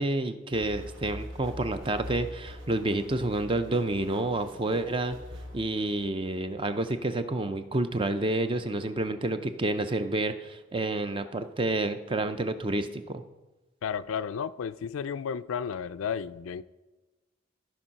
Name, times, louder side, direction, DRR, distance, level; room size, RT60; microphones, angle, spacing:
voice 1, 0.0-5.2 5.5-13.2, right 2 dB, 25° right, 10 dB, 0.5 m, -29 dB
sound 1, 0.5-6.5, left 1 dB, 75° right, 1.3 m, -43 dB
voice 2, 13.8-16.6, left 7 dB, 90° left, 15 dB, 0.4 m, -33 dB
14.0 x 4.6 x 5.7 m, 1.1 s
head